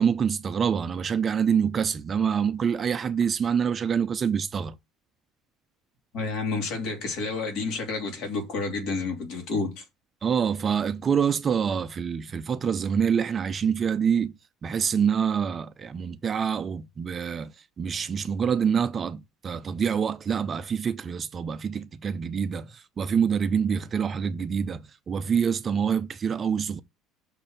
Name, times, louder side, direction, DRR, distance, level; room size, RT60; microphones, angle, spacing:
voice 1, 0.0-4.8 10.2-14.4 14.6-17.5 17.8-26.8, right 7 dB, 25° right, 0.4 m, -26 dB
voice 2, 6.1-9.8, left 3 dB, 50° left, 3.0 m, -30 dB
6.4 x 4.5 x 6.5 m
cardioid pair, 175°, 0 cm